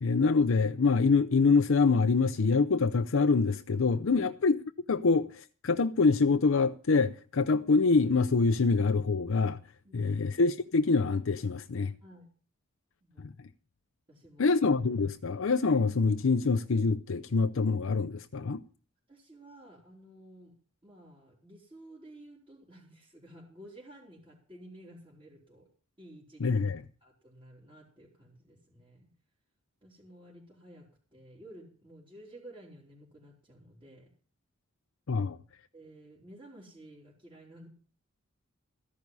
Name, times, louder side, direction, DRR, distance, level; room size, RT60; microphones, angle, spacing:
voice 1, 0.0-4.6 4.9-9.6 9.9-11.9 13.2-13.3 14.4-18.6 26.4-26.8 35.1-35.4, left 4 dB, 65° left, 0.6 m, -25 dB
voice 2, 9.8-10.3 12.0-12.3 13.0-13.3 14.1-14.5 19.1-20.5 20.8-25.7 26.0-26.5 27.0-29.1 29.8-34.1 35.1-35.2 35.7-37.7, right 1 dB, 25° right, 3.4 m, -53 dB
13.5 x 11.0 x 5.4 m
head